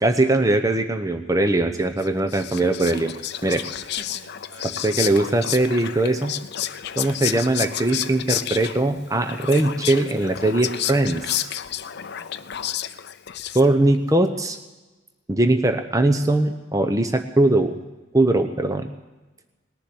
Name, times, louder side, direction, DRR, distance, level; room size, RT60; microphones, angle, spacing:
voice 1, 0.0-3.1 3.4-3.6 4.8-6.4 7.0-11.5 13.5-14.6 15.3-17.8 18.1-18.9, right 2 dB, 15° right, 7 dB, 0.7 m, -21 dB
Whispering, 2.0-14.0, left 11 dB, 50° left, 0.5 m, -31 dB
voice 2, 3.7-5.2 6.9-7.1 11.8-12.9 16.9-17.3, right 2 dB, 90° right, 3 dB, 2.2 m, -48 dB
19.5 x 7.3 x 9.8 m, 1.2 s
head